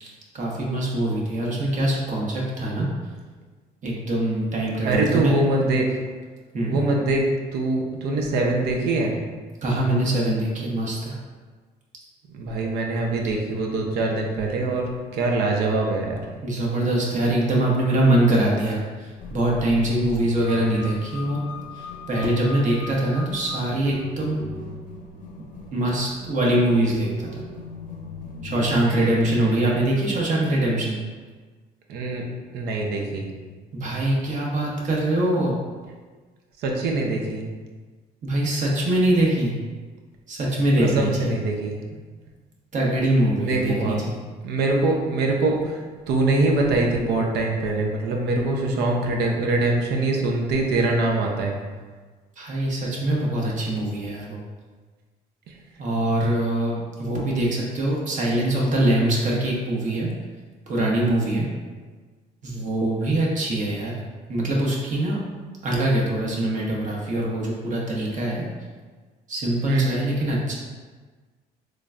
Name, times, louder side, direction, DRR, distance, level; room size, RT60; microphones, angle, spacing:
voice 1, 0.0-2.9 3.8-5.3 6.5-6.8 9.6-11.1 16.4-21.4 21.7-24.4 25.7-27.3 28.4-31.0 33.7-35.6 38.2-39.5 40.3-41.3 42.7-44.2 52.4-54.4 55.8-60.1 60.7-61.5 62.4-63.9 64.3-65.2 65.6-68.5 69.3-70.5, right 1 dB, 45° right, -3 dB, 1.0 m, -23 dB
voice 2, 4.8-6.0 6.7-7.2 7.5-9.2 12.3-14.8 15.1-16.2 28.8-29.5 31.9-32.2 32.5-33.3 36.6-37.4 40.8-41.8 43.4-44.0 44.4-51.5 55.5-55.6 69.7-70.1, right 2 dB, 75° right, 1 dB, 0.7 m, -23 dB
sound 1, 19.2-29.4, left 4 dB, 50° left, 0.6 m, -38 dB
3.8 x 3.2 x 2.4 m, 1.4 s
cardioid pair, 110°, 17 cm